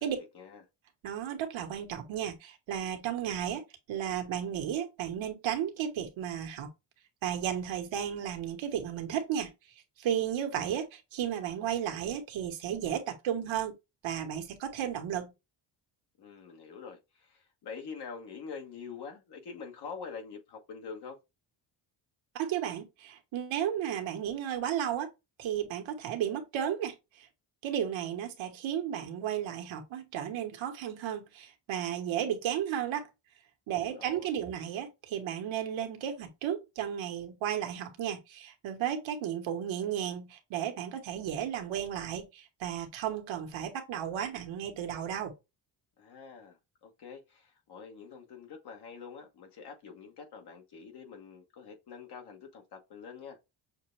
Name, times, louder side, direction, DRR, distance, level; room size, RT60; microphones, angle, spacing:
voice 1, 1.0-6.7 7.2-9.5 10.0-13.7 14.0-15.3 22.3-25.1 25.4-27.3 27.6-33.1 33.7-45.3, right 9 dB, 80° right, 1.3 m, -34 dB
voice 2, 16.2-21.2 33.7-34.4 46.0-53.4, left 5 dB, 60° left, 1.4 m, -46 dB
6.4 x 2.2 x 3.2 m
cardioid pair, 110°, 45 cm